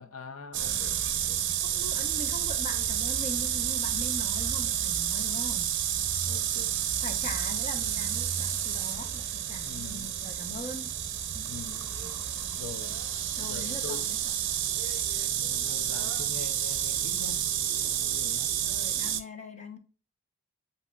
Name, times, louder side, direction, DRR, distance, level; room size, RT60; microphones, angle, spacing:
voice 1, 0.0-1.4 6.0-6.8 9.6-10.1 11.3-11.9 12.5-13.0 13.4-14.1 15.4-17.5 17.8-18.5, left 5 dB, 85° left, 0.6 m, -44 dB
sound 1, 0.5-19.2, right 10 dB, 55° right, 0.6 m, -30 dB
voice 2, 1.6-5.7 7.0-10.9 13.4-14.2 18.6-19.8, left 2 dB, 30° left, 0.8 m, -41 dB
8.1 x 2.8 x 2.3 m
head